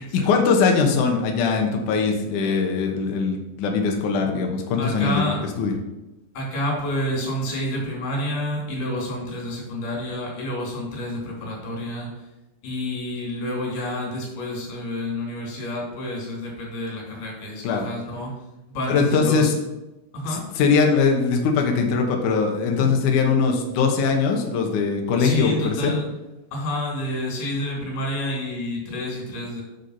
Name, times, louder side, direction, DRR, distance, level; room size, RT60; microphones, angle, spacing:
voice 1, 0.0-5.2 5.6-5.7 17.6-17.8 18.9-19.6 20.6-25.9, left 5 dB, 90° left, 2 dB, 1.8 m, -21 dB
voice 2, 4.8-5.4 6.3-12.1 12.6-18.3 18.7-19.5 20.1-20.4 22.7-23.0 25.2-26.0 26.5-29.6, left 1 dB, 50° left, -2 dB, 4.0 m, -29 dB
7.1 x 6.7 x 5.7 m, 1.0 s
omnidirectional pair, 5.2 m